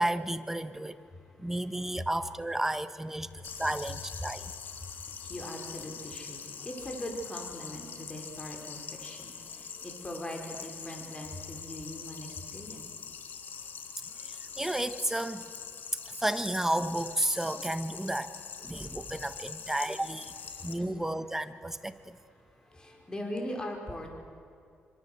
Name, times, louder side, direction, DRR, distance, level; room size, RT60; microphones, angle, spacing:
voice 1, 0.0-1.0 1.4-4.5 14.2-15.4 16.0-18.3 18.6-20.3 20.6-22.2, right 1 dB, 10° right, 11 dB, 1.4 m, -32 dB
sound 1, 3.4-20.7, left 6 dB, 60° left, 2.6 m, -43 dB
voice 2, 4.8-12.9 20.6-21.1 22.4-24.1, left 1 dB, 20° left, 2 dB, 5.3 m, -41 dB
27.0 x 26.5 x 8.2 m, 2.5 s
cardioid pair, 95°, 4 cm